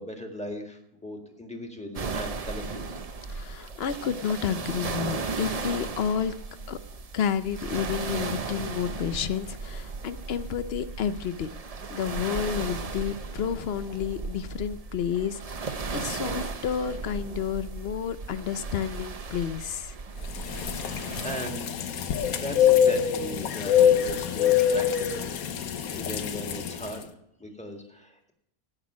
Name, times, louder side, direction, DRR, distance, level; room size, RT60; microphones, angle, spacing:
voice 1, 0.0-3.0 20.9-21.8 22.3-25.3 25.6-27.1 27.4-28.3, equal, 5° left, 3 dB, 1.7 m, -38 dB
sound 1, 1.9-21.5, right 4 dB, 35° right, 0.6 m, -36 dB
voice 2, 3.3-6.3 6.7-6.8 7.1-11.5 11.9-19.9, left 8 dB, 60° left, 13 dB, 0.7 m, -30 dB
sound 2, 20.3-26.9, left 9 dB, 90° left, 1.4 m, -24 dB
16.5 x 6.1 x 6.1 m, 0.79 s
omnidirectional pair, 1.5 m